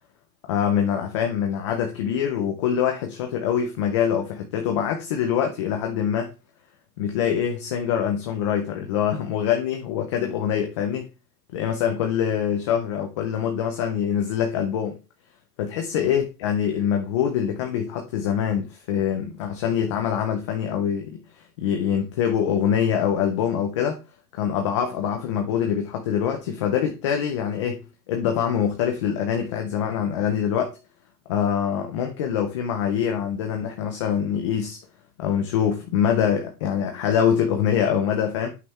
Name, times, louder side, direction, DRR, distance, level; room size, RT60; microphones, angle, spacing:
voice 1, 0.5-6.3 7.0-11.1 11.5-15.0 15.6-24.0 24.3-30.7 31.3-34.8 35.2-38.5, left 8 dB, 20° left, 0.4 m, -24 dB
8.3 x 5.6 x 4.3 m
supercardioid pair, 170°, 49 cm